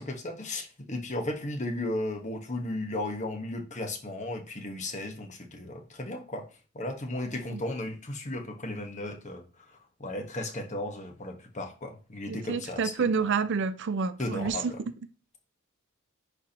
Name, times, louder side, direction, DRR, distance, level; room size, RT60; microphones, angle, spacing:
voice 1, 0.0-6.4 6.7-12.9 14.2-14.8, left 1 dB, 35° left, 1.3 m, -35 dB
voice 2, 12.3-14.7, right 5 dB, 55° right, 0.5 m, -29 dB
10.5 x 4.4 x 2.9 m
head